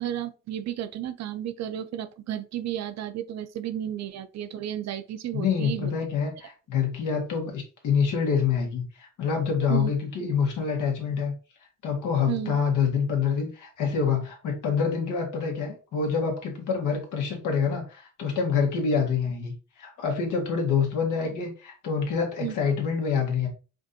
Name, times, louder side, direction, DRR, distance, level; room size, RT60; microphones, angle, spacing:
voice 1, 0.0-5.9 9.7-9.9 12.3-12.6 22.4-22.5, right 11 dB, 60° right, 0.5 m, -32 dB
voice 2, 5.3-11.3 11.8-23.5, left 6 dB, 80° left, 1.5 m, -26 dB
5.1 x 2.6 x 2.6 m
cardioid pair, 90°, 30 cm